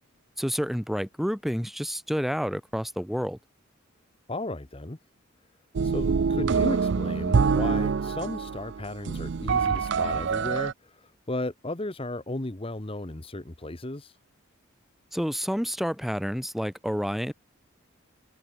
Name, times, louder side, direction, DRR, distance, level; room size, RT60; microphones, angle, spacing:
voice 1, 0.4-3.4 15.1-17.3, equal, ahead, 1.7 m, -29 dB
voice 2, 4.3-5.0 5.8-14.2, left 2 dB, 25° left, 1.0 m, -35 dB
sound 1, 5.7-10.7, right 5 dB, 55° right, 0.4 m, -25 dB
head